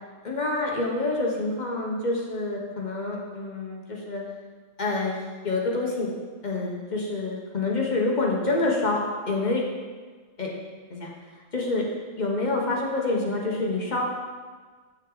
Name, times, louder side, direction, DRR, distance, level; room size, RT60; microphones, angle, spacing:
voice 1, 0.2-4.2 4.8-5.2 5.4-6.1 6.4-9.6 10.4-10.5 10.9-11.1 11.5-11.8 12.2-14.0, left 2 dB, 35° left, -2 dB, 1.3 m, -27 dB
8.4 x 6.3 x 3.9 m, 1.5 s
omnidirectional pair, 1.3 m